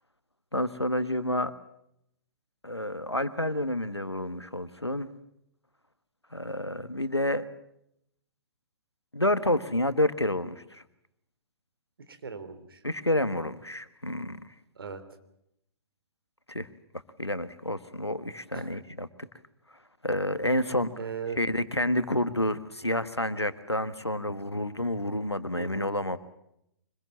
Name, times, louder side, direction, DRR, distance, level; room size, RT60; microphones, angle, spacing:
voice 1, 0.5-1.5 2.6-5.1 6.3-7.4 9.1-10.8 12.8-14.4 16.5-16.7 17.2-19.1 20.0-20.9 21.4-26.2, left 1 dB, 90° left, 13 dB, 1.5 m, -29 dB
voice 2, 12.1-12.8 14.7-15.0 18.5-18.7 20.9-21.4 25.6-25.9, right 6 dB, 60° right, 9 dB, 3.1 m, -38 dB
25.0 x 21.0 x 7.4 m, 0.78 s
figure-of-eight pair, 120°, 14 cm